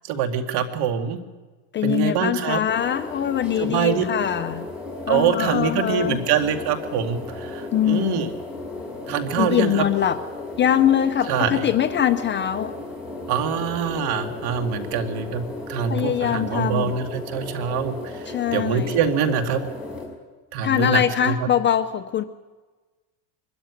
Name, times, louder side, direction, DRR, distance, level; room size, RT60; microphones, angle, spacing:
voice 1, 0.0-1.2 1.8-2.6 3.6-4.0 5.1-8.3 9.1-9.8 11.3-11.7 13.3-19.6 20.5-21.3, right 7 dB, 50° right, 6 dB, 2.4 m, -24 dB
voice 2, 1.7-4.7 5.1-6.2 7.7-8.3 9.4-10.2 10.6-12.7 15.9-17.0 18.3-19.0 20.6-22.2, left 10 dB, 25° left, 9 dB, 0.6 m, -22 dB
sound 1, 2.7-20.0, left 2 dB, ahead, 6.1 m, -35 dB
23.0 x 13.5 x 9.8 m, 1.3 s
supercardioid pair, 145°, 49 cm